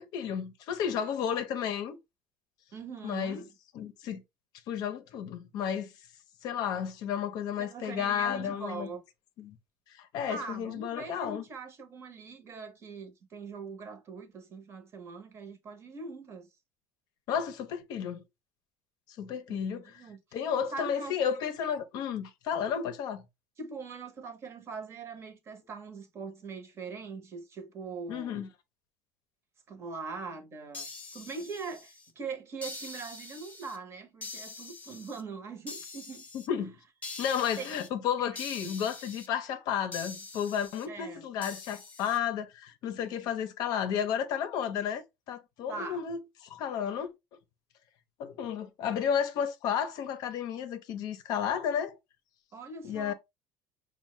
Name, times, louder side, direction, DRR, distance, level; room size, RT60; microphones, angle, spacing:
voice 1, 0.0-2.0 3.0-3.4 3.8-4.2 4.7-5.9 6.4-8.9 9.4-9.6 9.9-11.4 17.3-18.2 19.2-20.0 20.3-23.2 28.1-28.5 36.3-36.8 37.2-47.4 48.2-52.0 52.8-53.1, left 8 dB, 60° left, 0.6 m, -32 dB
voice 2, 2.7-3.5 7.6-9.0 10.3-16.5 19.5-20.2 20.7-21.2 23.6-28.5 29.7-36.3 37.6-37.8 38.2-38.7 40.9-41.2 45.7-46.0 52.5-53.1, right 4 dB, 35° right, 0.8 m, -42 dB
sound 1, 30.7-32.1 32.6-33.8 34.2-35.2 35.7-36.5 37.0-37.9 38.3-39.3 39.9-40.9 41.4-42.2, left 3 dB, 20° left, 0.7 m, -44 dB
4.3 x 2.1 x 3.0 m
cardioid pair, 130°, 8 cm